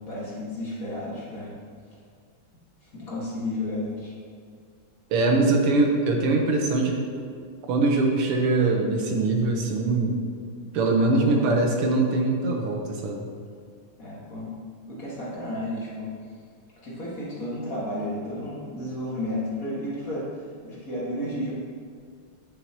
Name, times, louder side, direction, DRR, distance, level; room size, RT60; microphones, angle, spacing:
voice 1, 0.1-1.6 2.9-4.1 11.1-11.5 14.0-14.5 14.9-16.1 16.8-20.3 20.6-21.5, left 1 dB, 40° left, -7 dB, 2.2 m, -32 dB
voice 2, 5.1-7.2 7.7-10.2 10.7-13.3, right 3 dB, 90° right, 1 dB, 2.0 m, -22 dB
10.0 x 8.1 x 3.0 m, 2.1 s
omnidirectional pair, 2.4 m